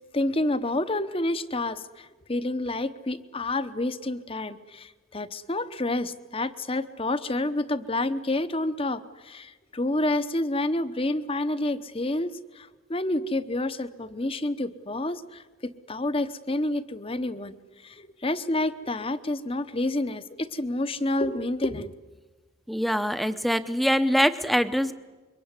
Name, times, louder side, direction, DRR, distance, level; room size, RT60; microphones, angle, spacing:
voice 1, 0.1-17.6 17.8-21.9, left 2 dB, 25° left, 13 dB, 0.9 m, -29 dB
voice 2, 22.7-24.9, equal, ahead, 11 dB, 0.8 m, -24 dB
26.0 x 23.5 x 9.7 m, 1.3 s
head